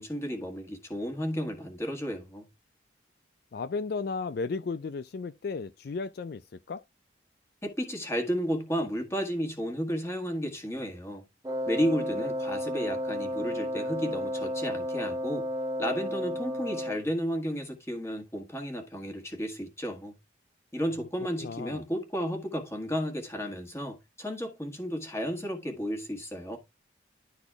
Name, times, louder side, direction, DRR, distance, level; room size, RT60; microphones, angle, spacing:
voice 1, 0.0-2.5 7.6-11.2 11.7-15.5 15.8-20.1 20.7-26.6, equal, 15° left, 1.7 m, -33 dB
voice 2, 3.5-6.8 21.4-21.8, left 4 dB, 55° left, 0.3 m, -34 dB
Wind instrument woodwind instrument, 11.4-17.2, equal, 20° right, 1.2 m, -32 dB
11.5 x 4.1 x 3.5 m
head